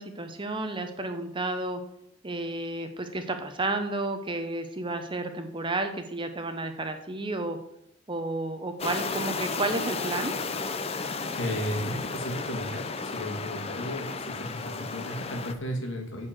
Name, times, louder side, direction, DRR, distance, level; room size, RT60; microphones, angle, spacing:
voice 1, 0.0-1.8 2.2-7.6 8.1-10.3, right 2 dB, 25° right, 7 dB, 0.7 m, -31 dB
sound 1, 8.8-15.5, left 4 dB, 30° left, 0.5 m, -33 dB
voice 2, 11.4-16.3, equal, 65° left, 2 dB, 2.1 m, -34 dB
9.6 x 4.6 x 7.5 m, 0.79 s
head